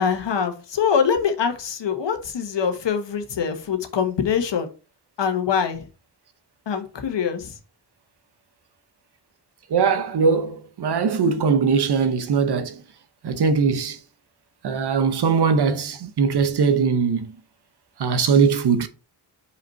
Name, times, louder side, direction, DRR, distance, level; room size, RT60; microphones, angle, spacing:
voice 1, 0.0-4.7 5.2-5.8 6.7-7.6, left 7 dB, 80° left, 1.5 m, -24 dB
voice 2, 9.7-12.8 13.2-14.0 14.6-17.3 18.0-18.9, right 5 dB, 65° right, 0.9 m, -20 dB
5.5 x 5.0 x 5.6 m
wide cardioid pair, 175°, 42 cm